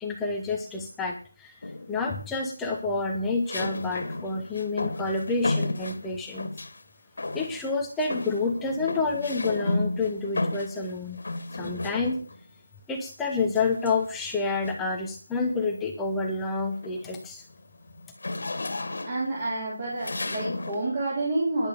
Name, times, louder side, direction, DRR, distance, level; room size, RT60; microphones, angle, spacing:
voice 1, 0.0-6.5 7.3-11.2 11.5-12.2 12.9-17.4, left 3 dB, 5° left, 1 dB, 0.8 m, -29 dB
sound 1, 1.6-2.1 3.5-6.8 7.2-7.7 8.0-12.4 13.6-14.9 15.5-15.7 16.1-20.9, left 2 dB, 55° left, 1.8 m, -33 dB
voice 2, 19.1-21.7, right 2 dB, 25° right, -6 dB, 4.1 m, -29 dB
10.5 x 8.7 x 6.7 m, 0.39 s
figure-of-eight pair, 175°, 0 cm